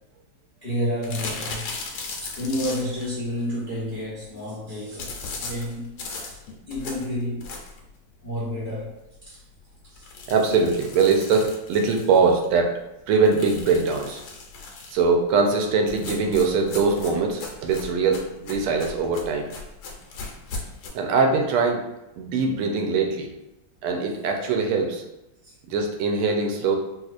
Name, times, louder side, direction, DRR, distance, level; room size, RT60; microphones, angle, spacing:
voice 1, 0.6-1.7 2.3-6.4 6.7-7.5 8.2-9.4 9.9-10.0 25.4-25.5, equal, 50° left, -7 dB, 0.5 m, -30 dB
sound 1, 1.0-3.1 5.0-7.9 8.4-8.5 8.8-8.9 9.2-9.3 9.9-12.5 13.3-15.0 15.9-20.9, left 4 dB, 80° left, 1.5 m, -37 dB
voice 2, 10.3-12.7 13.1-14.2 14.9-19.5 20.9-21.8 22.2-23.3 23.8-25.0 25.7-26.8, right 4 dB, 80° right, 2 dB, 1.4 m, -22 dB
4.1 x 2.4 x 2.4 m, 0.91 s
omnidirectional pair, 2.3 m